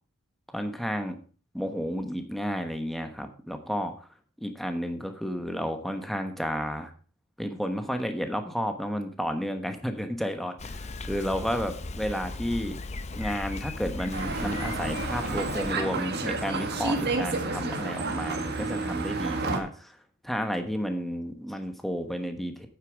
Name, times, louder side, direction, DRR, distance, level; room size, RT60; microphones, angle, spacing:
voice 1, 0.5-1.2 1.5-4.1 4.4-6.9 7.4-12.8 13.1-20.0 20.2-22.7, equal, ahead, 6 dB, 1.1 m, -32 dB
Bicycle, 10.6-15.7, left 2 dB, 30° left, 0.6 m, -37 dB
sound 1, 14.1-19.6, right 3 dB, 50° right, 1.7 m, -30 dB
9.2 x 8.3 x 4.6 m, 0.38 s
head